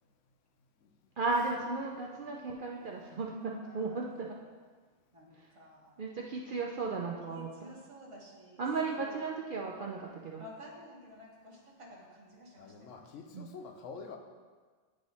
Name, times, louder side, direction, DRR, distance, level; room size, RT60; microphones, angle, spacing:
voice 1, 1.2-4.3 6.0-7.7 8.6-10.4 13.3-13.5, right 3 dB, 65° right, -2 dB, 0.5 m, -35 dB
voice 2, 1.9-2.3 2.7-3.2 12.6-14.2, left 5 dB, 70° left, 5 dB, 0.9 m, -48 dB
voice 3, 3.6-4.4 5.1-6.0 7.3-8.7 9.0-9.2 10.4-13.1, left 1 dB, 25° right, -3 dB, 1.0 m, -52 dB
9.7 x 3.2 x 4.0 m, 1.5 s
omnidirectional pair, 1.4 m